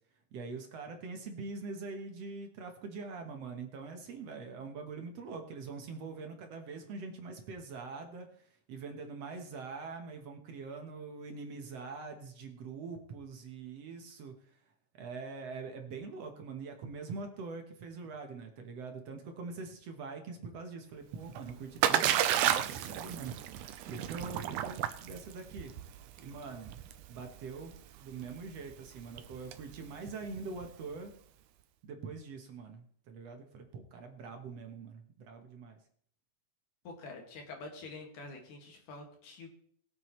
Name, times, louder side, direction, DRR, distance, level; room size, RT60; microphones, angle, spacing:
voice 1, 0.3-8.3 8.7-14.3 14.9-23.3 23.9-25.7 26.2-31.1 31.8-35.8, right 4 dB, 60° right, 4 dB, 2.2 m, -44 dB
Splash splatter, 21.1-31.0, right 11 dB, 80° right, 2.2 m, -33 dB
voice 2, 36.9-39.5, left 3 dB, 80° left, 2 dB, 3.6 m, -47 dB
21.5 x 7.7 x 3.2 m, 0.63 s
omnidirectional pair, 3.6 m